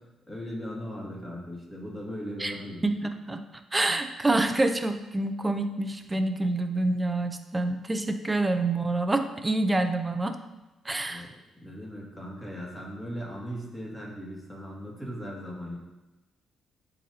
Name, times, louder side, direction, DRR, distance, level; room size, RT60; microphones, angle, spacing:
voice 1, 0.3-2.8 11.1-11.3 11.6-15.8, equal, 10° left, -4 dB, 2.3 m, -38 dB
voice 2, 3.7-10.4 10.8-11.3, right 2 dB, 15° right, 7 dB, 0.6 m, -27 dB
10.5 x 4.1 x 2.8 m, 1.0 s
cardioid pair, 90°, 0 cm